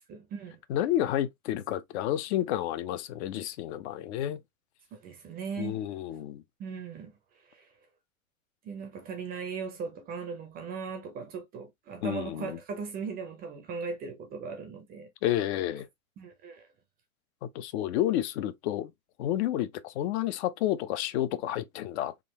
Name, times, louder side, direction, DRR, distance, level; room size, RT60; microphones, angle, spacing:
voice 1, 0.1-0.6 4.9-5.8 6.6-7.2 7.5-7.7 8.6-15.1 16.2-16.6, right 5 dB, 20° right, 0.5 m, -38 dB
voice 2, 0.7-4.4 5.6-6.4 12.0-12.6 15.2-15.9 17.4-18.9 19.2-22.1, left 12 dB, 50° left, 0.6 m, -30 dB
3.7 x 2.3 x 2.8 m
hypercardioid pair, 115°, 43 cm